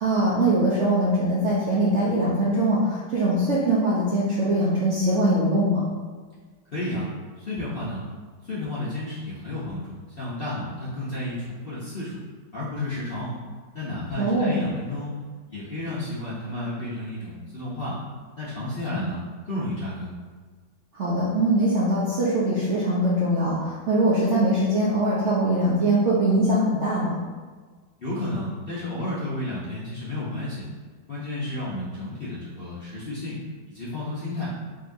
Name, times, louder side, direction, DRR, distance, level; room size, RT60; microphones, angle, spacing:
voice 1, 0.0-5.8 14.2-14.5 20.9-27.1, right 1 dB, 65° right, -7 dB, 0.7 m, -22 dB
voice 2, 6.7-7.1 7.4-8.0 8.4-12.2 12.5-13.3 13.7-15.2 15.5-18.0 18.4-19.2 19.4-20.1 28.0-30.6 31.1-33.4 33.7-34.5, left 1 dB, 50° left, -9 dB, 0.7 m, -32 dB
5.0 x 2.9 x 2.6 m, 1.5 s
omnidirectional pair, 1.9 m